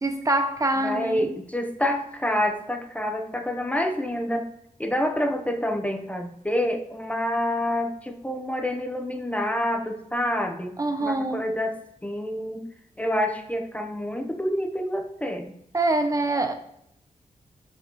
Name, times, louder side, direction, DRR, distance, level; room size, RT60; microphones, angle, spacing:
voice 1, 0.0-1.3 10.8-11.5 15.7-16.5, right 2 dB, 25° right, 6 dB, 0.7 m, -25 dB
voice 2, 0.8-4.5 4.8-11.8 12.0-12.7 13.0-15.5, left 1 dB, 10° left, 4 dB, 0.8 m, -27 dB
12.5 x 5.5 x 3.0 m, 0.72 s
wide cardioid pair, 120°, 14 cm